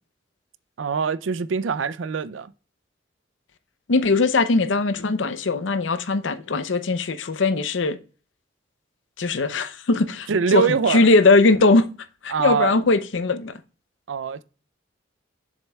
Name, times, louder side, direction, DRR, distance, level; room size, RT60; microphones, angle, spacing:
voice 1, 0.8-2.5 10.3-11.1 12.3-12.7 14.1-14.4, right 6 dB, 90° right, 0.5 m, -24 dB
voice 2, 3.9-8.0 9.2-11.9 12.2-13.6, left 3 dB, 80° left, 0.6 m, -20 dB
7.3 x 6.5 x 2.3 m
head